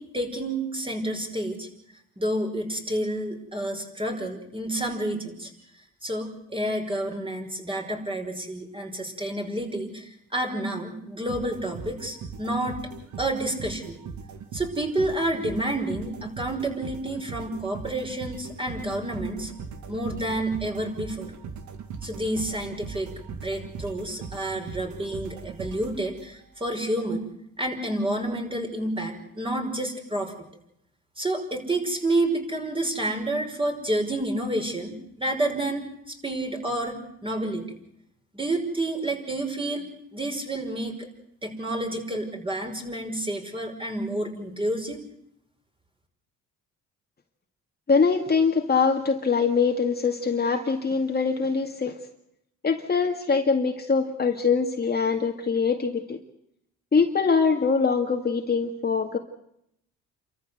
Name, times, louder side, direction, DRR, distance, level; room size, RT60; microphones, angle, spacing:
voice 1, 0.0-1.7 2.2-5.5 6.0-12.8 13.2-14.0 14.5-19.5 19.9-21.3 22.0-27.3 27.6-30.3 31.2-37.8 38.3-41.1 41.4-45.0, right 1 dB, 15° right, 3 dB, 5.6 m, -29 dB
sound 1, 11.3-26.5, right 5 dB, 70° right, 2.5 m, -39 dB
voice 2, 47.9-51.9 52.6-56.2 56.9-59.2, left 5 dB, 30° left, 4 dB, 2.1 m, -23 dB
29.0 x 14.0 x 7.9 m, 0.77 s
cardioid pair, 90°, 30 cm